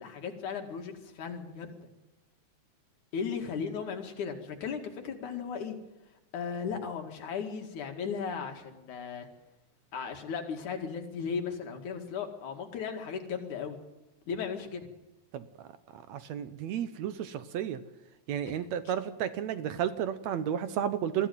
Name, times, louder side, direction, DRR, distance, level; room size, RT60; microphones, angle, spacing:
voice 1, 0.0-1.8 3.1-5.8 6.3-9.3 9.9-13.8 14.3-14.9 18.5-18.7, left 6 dB, 75° left, 4 dB, 3.5 m, -36 dB
voice 2, 15.3-15.7 15.9-17.8 18.3-21.3, right 9 dB, 70° right, 12 dB, 2.0 m, -32 dB
21.0 x 14.5 x 9.3 m, 0.99 s
omnidirectional pair, 3.5 m